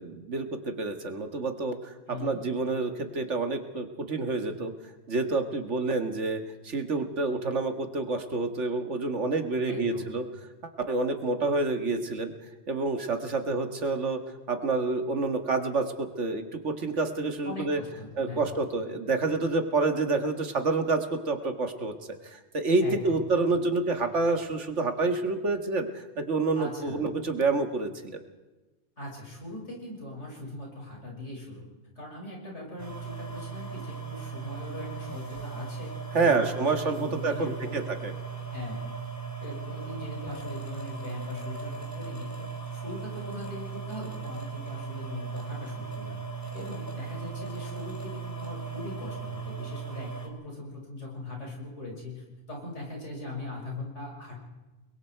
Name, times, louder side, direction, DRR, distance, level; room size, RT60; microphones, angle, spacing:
voice 1, 0.0-4.7 5.1-10.3 10.9-12.3 12.7-14.2 14.5-17.8 18.2-21.9 22.2-28.2 36.1-38.1, right 3 dB, 85° right, 6 dB, 2.0 m, -28 dB
voice 2, 2.1-2.4 9.6-10.1 17.4-18.5 22.8-23.3 26.5-27.0 29.0-31.6 31.9-37.8 38.5-38.9 39.4-42.3 42.7-54.4, left 2 dB, 85° left, -2 dB, 6.7 m, -40 dB
sound 1, 32.8-50.3, right 6 dB, 15° left, 3.2 m, -38 dB
30.0 x 21.5 x 4.6 m, 1.1 s
omnidirectional pair, 1.2 m